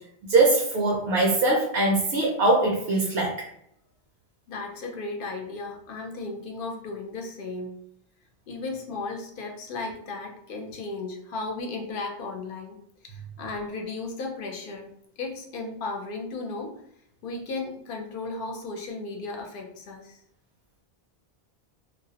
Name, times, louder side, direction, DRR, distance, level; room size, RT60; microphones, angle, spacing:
voice 1, 0.3-3.5, right 2 dB, 75° right, -2 dB, 0.8 m, -22 dB
voice 2, 4.5-7.8 8.5-12.8 13.0-14.9 15.2-16.8 17.2-20.2, left 3 dB, 65° left, 2 dB, 0.7 m, -35 dB
2.3 x 2.0 x 2.7 m, 0.72 s
omnidirectional pair, 1.0 m